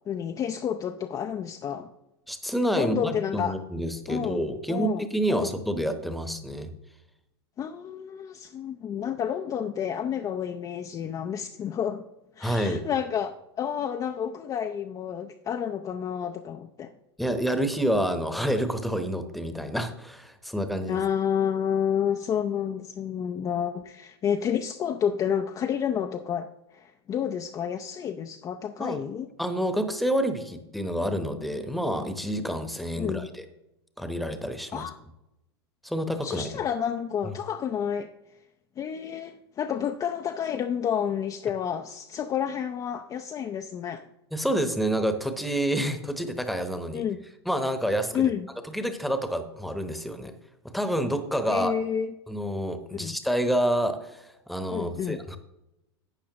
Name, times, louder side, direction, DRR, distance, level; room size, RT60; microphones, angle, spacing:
voice 1, 0.1-1.9 2.8-3.5 4.1-5.5 7.6-12.0 12.4-16.9 20.9-29.3 33.0-33.3 34.7-35.0 36.2-38.1 38.8-44.1 46.9-47.2 48.1-48.5 51.5-52.1 52.9-53.2 54.7-55.2, left 8 dB, 25° left, 6 dB, 0.5 m, -30 dB
voice 2, 2.3-6.7 12.4-12.8 17.2-21.0 28.8-29.0 29.4-33.4 34.0-34.9 35.8-36.5 44.3-47.0 47.5-48.3 48.7-50.3 50.6-51.7 52.3-55.4, equal, ahead, 8 dB, 1.0 m, -28 dB
11.5 x 8.4 x 3.0 m, 0.90 s
hypercardioid pair, 100°, 14 cm